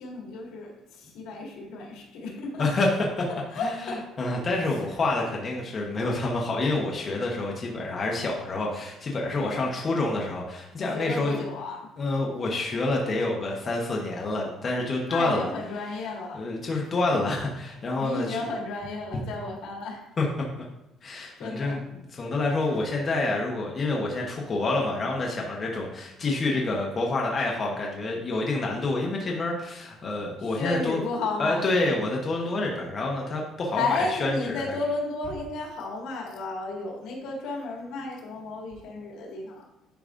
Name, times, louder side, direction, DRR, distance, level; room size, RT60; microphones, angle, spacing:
voice 1, 0.0-2.7 3.3-4.0 4.5-4.9 9.4-9.7 10.8-11.9 15.0-16.5 18.0-20.1 21.4-21.8 24.8-25.1 26.5-26.7 30.4-31.6 33.7-39.7, left 3 dB, 85° left, -2 dB, 1.9 m, -33 dB
voice 2, 3.6-11.4 12.0-15.5 16.3-18.4 20.2-20.3 21.0-21.8 22.1-31.0 31.4-34.8, left 2 dB, 30° left, -1 dB, 0.9 m, -28 dB
10.0 x 4.8 x 2.5 m, 0.90 s
cardioid pair, 160°, 0 cm